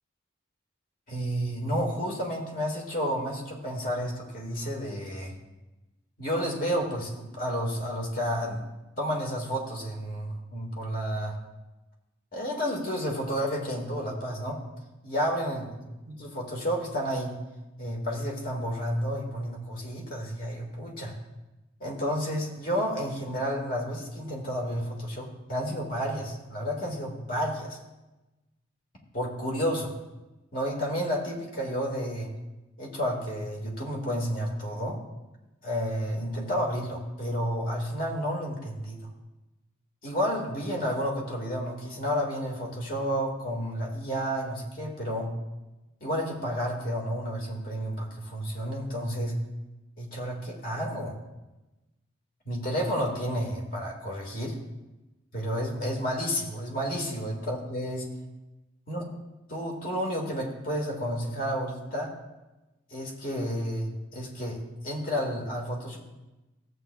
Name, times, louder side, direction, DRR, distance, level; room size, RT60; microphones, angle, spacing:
voice 1, 1.1-5.3 6.2-8.6 9.0-11.3 12.3-14.6 15.0-15.7 16.1-17.4 17.8-21.1 21.8-27.8 29.1-29.9 30.5-32.3 32.8-35.0 35.6-39.1 40.0-45.3 46.0-49.3 50.0-51.2 52.5-54.6 55.3-58.1 58.9-59.0 59.5-62.1 62.9-64.6 64.8-66.0, equal, 45° left, -1 dB, 1.8 m, -31 dB
14.5 x 8.1 x 2.3 m, 1.0 s
head